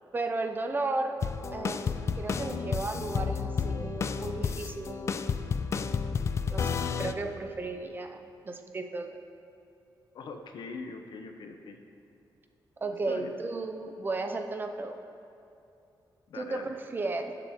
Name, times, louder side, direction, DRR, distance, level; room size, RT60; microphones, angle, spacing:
voice 1, 0.1-1.2 1.5-5.3 6.5-6.7 7.0-9.2 12.8-15.0 16.3-17.3, right 3 dB, 25° right, 5 dB, 0.6 m, -34 dB
sound 1, 1.2-7.1, left 6 dB, 35° left, 0.3 m, -31 dB
voice 2, 10.1-11.8 13.1-13.3 16.3-16.6, left 4 dB, 70° left, 5 dB, 0.8 m, -41 dB
20.0 x 6.8 x 3.6 m, 2.7 s
wide cardioid pair, 180°, 8 cm